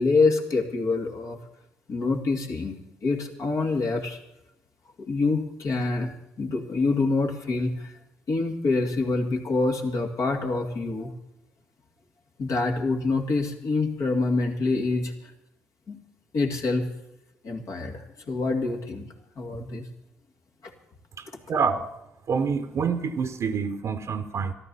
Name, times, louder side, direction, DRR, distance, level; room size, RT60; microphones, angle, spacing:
voice 1, 0.0-1.4 1.9-4.2 5.0-6.1 6.4-8.0 8.3-11.1 12.4-15.3 15.9-16.0 16.3-16.9 17.4-19.1 19.4-19.8, left 3 dB, 60° left, 2 dB, 2.2 m, -26 dB
voice 2, 21.2-21.9 22.3-24.5, right 5 dB, 55° right, 8 dB, 0.9 m, -27 dB
13.0 x 12.0 x 6.9 m, 0.87 s
hypercardioid pair, 45°, 6 cm